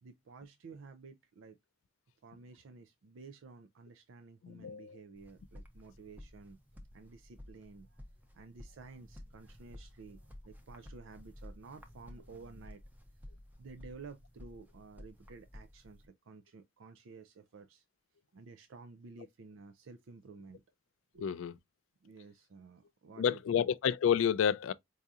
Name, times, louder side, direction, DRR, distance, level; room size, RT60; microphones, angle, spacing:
voice 1, 0.0-1.6 2.2-6.6 6.9-8.0 8.3-12.8 13.6-17.8 18.3-20.6 21.1-21.3 22.0-23.7, right 4 dB, 75° right, 0.4 m, -53 dB
voice 2, 4.4-5.0 21.2-21.5 23.2-24.7, left 8 dB, 75° left, 0.3 m, -30 dB
sound 1, 5.2-16.1, left 1 dB, 10° right, 0.7 m, -53 dB
4.7 x 2.7 x 2.3 m
head